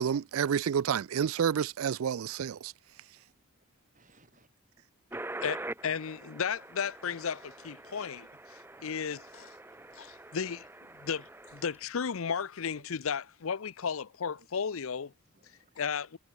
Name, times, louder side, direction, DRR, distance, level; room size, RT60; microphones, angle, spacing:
voice 1, 0.0-2.7, right 7 dB, 75° right, 0.4 m, -29 dB
voice 2, 3.9-4.5 8.8-8.9 9.7-10.0 10.4-10.5 11.0-11.2 14.4-14.5 15.3-15.7, right 2 dB, 35° right, 5.2 m, -66 dB
sound 1, 5.1-11.8, right 2 dB, 10° right, 0.8 m, -45 dB
voice 3, 5.4-9.5 10.0-10.6 11.0-15.1 15.8-16.2, left 6 dB, 70° left, 0.6 m, -34 dB
head